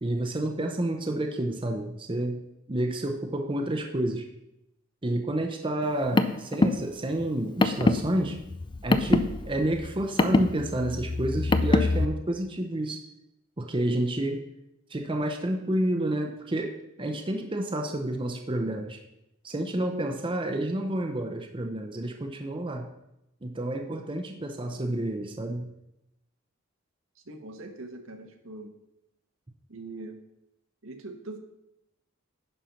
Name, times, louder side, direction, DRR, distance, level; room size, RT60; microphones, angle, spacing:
voice 1, 0.0-2.4 2.7-4.3 5.0-8.4 8.8-13.1 13.6-14.4 14.9-19.0 19.4-22.9 23.4-25.7, right 1 dB, 25° right, 3 dB, 0.7 m, -29 dB
Car, 5.8-12.1, left 2 dB, 25° left, 0.4 m, -25 dB
voice 2, 27.3-28.7 29.7-30.2 30.8-31.4, right 2 dB, 75° right, 4 dB, 1.3 m, -41 dB
11.0 x 4.4 x 5.7 m, 0.86 s
head